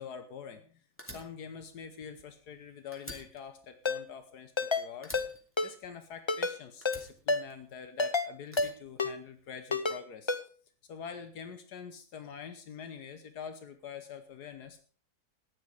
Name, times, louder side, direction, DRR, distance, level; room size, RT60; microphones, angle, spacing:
voice 1, 0.0-5.2 5.6-10.3 10.9-14.8, left 7 dB, 85° left, 9 dB, 1.6 m, -45 dB
Fire, 1.0-2.6 2.9-4.7 5.0-6.4 6.8-8.0 8.5-9.6, equal, 10° left, 2.7 m, -49 dB
Ringtone, 3.9-4.0 4.6-4.8 5.1-5.3 5.6-5.7 6.3-6.6 6.9-7.0 7.3-7.4 8.0-8.3 8.6-8.7 9.0-9.1 9.7-10.0 10.3-10.4, left 3 dB, 25° left, 0.6 m, -29 dB
14.5 x 10.5 x 5.0 m, 0.41 s
omnidirectional pair, 1.7 m